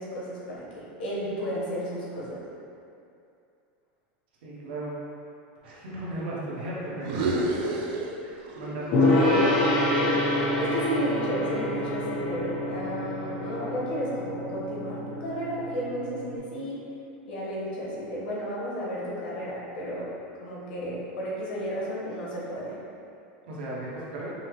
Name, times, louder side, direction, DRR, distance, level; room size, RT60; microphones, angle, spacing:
voice 1, 0.0-2.4 8.6-8.7 10.6-16.8 17.3-20.1 20.4-22.8, equal, 80° left, -6 dB, 1.3 m, -33 dB
voice 2, 4.4-5.0 5.6-7.8 8.2-9.6 23.5-24.3, right 1 dB, 80° right, -7 dB, 1.2 m, -36 dB
sound 1, 7.0-8.7 9.0-11.2, right 2 dB, 50° right, 0.5 m, -32 dB
Gong, 8.9-16.4, left 1 dB, 40° left, 0.9 m, -27 dB
5.5 x 2.2 x 3.1 m, 2.6 s
supercardioid pair, 165°, 6 cm